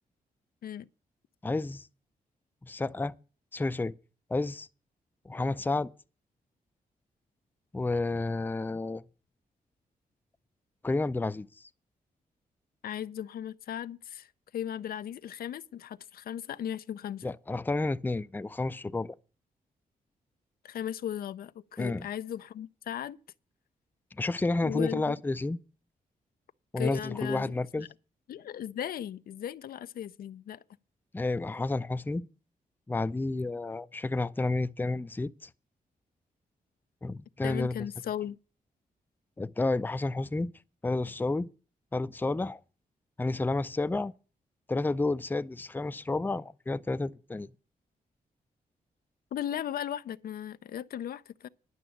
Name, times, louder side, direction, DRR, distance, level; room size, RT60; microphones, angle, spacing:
voice 1, 1.4-1.9 2.6-3.1 3.5-3.9 4.3-4.7 5.3-5.9 7.7-9.0 10.8-11.5 17.2-19.1 21.8-22.1 24.2-25.6 26.7-27.9 31.1-32.3 32.9-35.5 37.0-37.9 39.4-40.5 40.8-41.5 41.9-42.6 43.2-44.1 44.7-47.5, left 2 dB, 10° left, 0.5 m, -30 dB
voice 2, 12.8-17.3 20.6-23.2 24.6-25.2 26.8-27.9 28.3-30.6 37.4-38.4 49.3-51.5, left 10 dB, 75° left, 0.5 m, -37 dB
11.0 x 6.1 x 8.4 m
cardioid pair, 85°, 15 cm